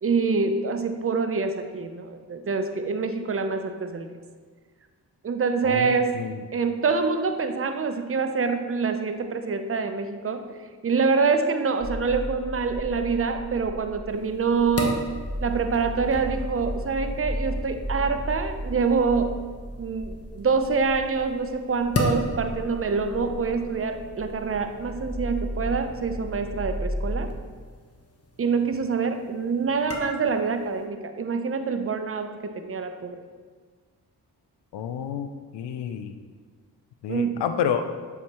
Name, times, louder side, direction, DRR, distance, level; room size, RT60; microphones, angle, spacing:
voice 1, 0.0-4.1 5.2-6.1 6.5-10.6 10.8-15.0 15.4-19.4 19.8-27.3 28.4-33.2 37.1-37.5, right 5 dB, 35° right, 7 dB, 0.6 m, -26 dB
voice 2, 5.6-6.4 34.7-35.3 35.5-36.1 37.0-37.8, left 8 dB, 85° left, 8 dB, 0.5 m, -29 dB
sound 1, 11.8-27.4, equal, 10° right, 1.3 m, -35 dB
sound 2, 14.1-30.9, left 2 dB, 35° left, 1.0 m, -37 dB
7.2 x 4.7 x 3.0 m, 1.5 s
supercardioid pair, 45°, 41 cm